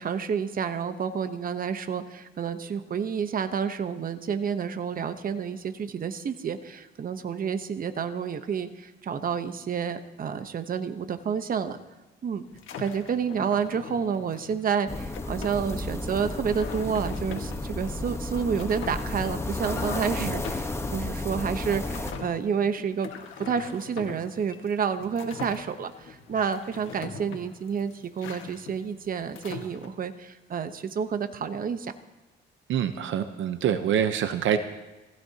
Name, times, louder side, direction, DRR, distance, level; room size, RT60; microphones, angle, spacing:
voice 1, 0.0-11.8 12.2-12.4 12.8-23.1 23.4-31.9, right 7 dB, 45° right, 10 dB, 0.9 m, -29 dB
sound 1, 12.5-29.9, left 6 dB, 80° left, 1.6 m, -42 dB
sound 2, 14.9-22.1, left 2 dB, 15° left, 1.1 m, -32 dB
voice 2, 32.7-34.6, right 9 dB, 75° right, 9 dB, 0.8 m, -26 dB
18.5 x 16.0 x 2.9 m, 1.1 s
cardioid pair, 90°, 20 cm